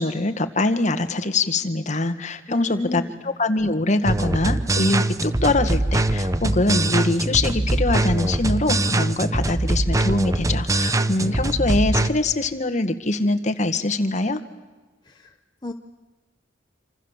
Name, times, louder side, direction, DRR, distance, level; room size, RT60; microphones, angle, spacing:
voice 1, 0.0-14.4, left 2 dB, 40° left, 8 dB, 1.8 m, -23 dB
voice 2, 2.5-3.1 15.0-15.4 15.6-15.7, left 2 dB, 20° left, 2 dB, 1.1 m, -32 dB
sound 1, 4.1-12.1, right 1 dB, 15° right, 0.8 m, -22 dB
27.5 x 27.0 x 7.5 m, 1.3 s
head